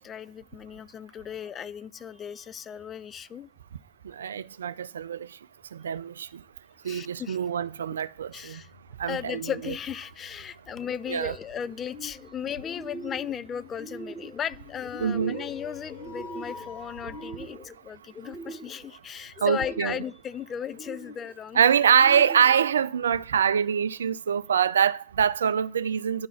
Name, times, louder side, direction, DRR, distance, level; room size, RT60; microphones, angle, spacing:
voice 1, 0.0-3.5 6.8-7.4 8.3-8.7 9.0-21.6, left 8 dB, 30° left, 0.4 m, -36 dB
voice 2, 4.0-5.3 5.7-6.3 6.8-8.6 9.0-9.7 11.1-11.3 15.0-15.5 19.4-19.9 21.5-26.3, right 8 dB, 80° right, 0.3 m, -24 dB
sound 1, 8.6-17.4, left 6 dB, 70° left, 0.8 m, -48 dB
sound 2, 10.8-11.3 11.7-12.3 12.6-13.4 13.7-14.4 14.8-15.6 15.9-16.7 17.0-17.8 18.1-18.9 19.4-20.1 20.6-21.3 21.9-22.7, right 2 dB, 15° left, 0.9 m, -42 dB
10.5 x 3.8 x 7.1 m
figure-of-eight pair, 85°, 0 cm